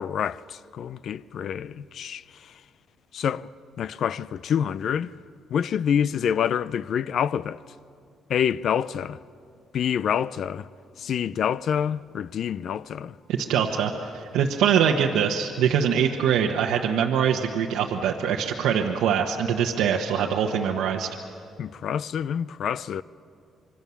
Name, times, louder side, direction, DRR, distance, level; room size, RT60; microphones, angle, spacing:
voice 1, 0.0-2.5 3.1-3.5 3.8-5.1 5.5-7.6 8.3-9.2 9.7-10.7 11.0-13.2 21.6-23.0, left 8 dB, 65° left, 0.5 m, -27 dB
voice 2, 13.4-21.1, right 8 dB, 90° right, 1.1 m, -23 dB
26.0 x 23.5 x 7.1 m
cardioid pair, 90°, 0 cm